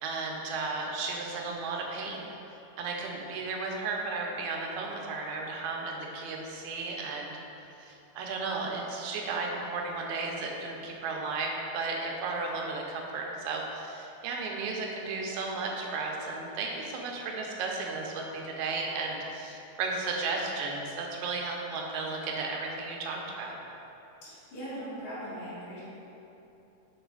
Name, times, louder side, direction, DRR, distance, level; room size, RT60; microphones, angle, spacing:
voice 1, 0.0-2.4 2.8-7.3 7.8-23.6, right 3 dB, 90° right, 0 dB, 2.0 m, -34 dB
voice 2, 24.2-25.8, equal, 75° left, -14 dB, 2.8 m, -40 dB
6.0 x 4.0 x 4.7 m, 2.9 s
omnidirectional pair, 3.4 m